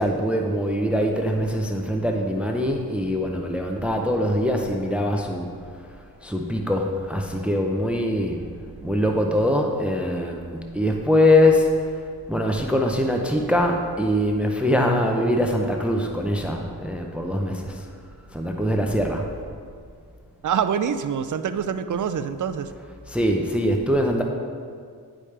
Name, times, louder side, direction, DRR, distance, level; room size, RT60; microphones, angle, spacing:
voice 1, 0.0-5.5 6.2-8.5 8.8-11.7 12.3-17.8 18.3-19.2 23.1-24.2, left 1 dB, 5° right, 2 dB, 0.6 m, -23 dB
voice 2, 20.4-22.7, right 7 dB, 50° right, 11 dB, 0.5 m, -25 dB
9.9 x 5.0 x 3.3 m, 2.1 s
cardioid pair, 60°, 39 cm